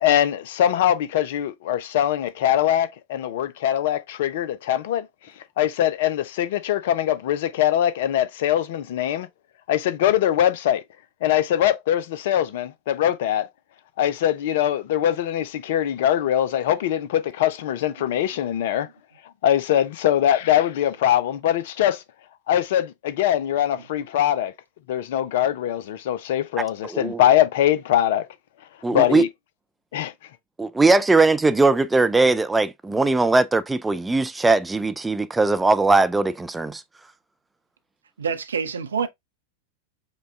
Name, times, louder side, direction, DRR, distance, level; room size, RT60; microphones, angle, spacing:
voice 1, 0.0-5.1 5.6-9.3 9.7-10.8 11.2-13.5 14.0-18.9 19.4-22.0 22.5-24.5 24.9-28.3 28.9-29.3 29.9-30.1, left 11 dB, 55° left, 0.5 m, -22 dB
voice 2, 26.8-27.2 28.8-29.3 30.6-36.8, right 3 dB, 10° right, 0.4 m, -20 dB
voice 3, 38.2-39.1, right 6 dB, 70° right, 0.6 m, -26 dB
5.1 x 2.2 x 3.4 m
figure-of-eight pair, 90°, 0 cm